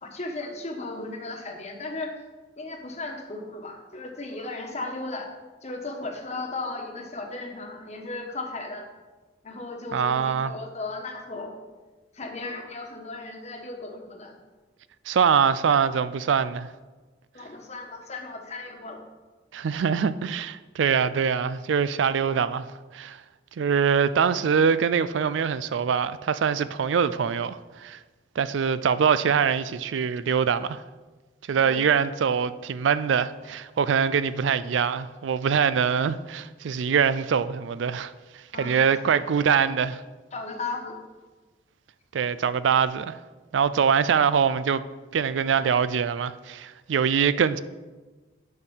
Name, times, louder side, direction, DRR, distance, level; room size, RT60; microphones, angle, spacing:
voice 1, 0.0-2.2 2.6-5.3 5.6-8.9 9.4-11.5 12.1-14.3 17.3-19.0 31.5-31.8 38.5-38.9 40.3-41.0, left 3 dB, 35° left, 1.2 m, -36 dB
voice 2, 9.9-10.5 15.1-16.7 19.5-22.7 22.9-23.2 23.6-28.0 28.4-30.8 31.5-38.1 38.6-40.0 42.1-43.2 43.5-44.8 45.1-47.6, right 6 dB, 75° right, 0.4 m, -23 dB
9.7 x 4.6 x 7.1 m
head